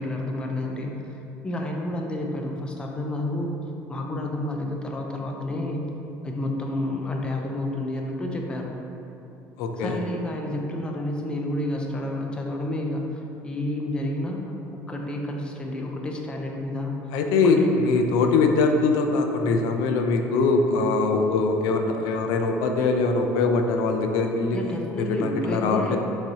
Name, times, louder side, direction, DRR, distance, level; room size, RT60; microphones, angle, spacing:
voice 1, 0.0-3.6 3.9-5.8 6.2-8.7 9.8-14.5 14.9-17.0 17.4-17.7 24.5-26.0, left 1 dB, 15° left, 1 dB, 0.4 m, -30 dB
voice 2, 9.6-10.0 17.1-24.6 25.0-26.0, left 3 dB, 80° left, 4 dB, 0.4 m, -22 dB
6.1 x 3.2 x 2.8 m, 2.9 s
cardioid pair, 160°, 6 cm